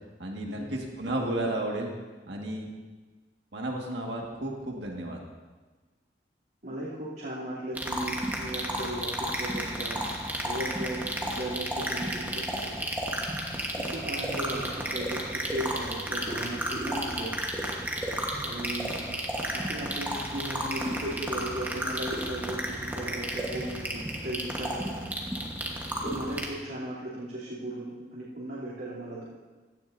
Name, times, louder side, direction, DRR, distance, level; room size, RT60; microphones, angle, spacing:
voice 1, 0.2-1.9 2.3-2.7 3.5-5.2, right 1 dB, 85° right, 0 dB, 1.9 m, -32 dB
voice 2, 6.6-10.0 10.4-12.8 13.7-17.3 18.4-19.0 19.5-24.9 26.0-29.2, right 1 dB, 70° right, -10 dB, 3.0 m, -36 dB
sound 1, 7.8-26.5, right 1 dB, 10° right, 1.2 m, -32 dB
16.5 x 13.0 x 2.7 m, 1.3 s
head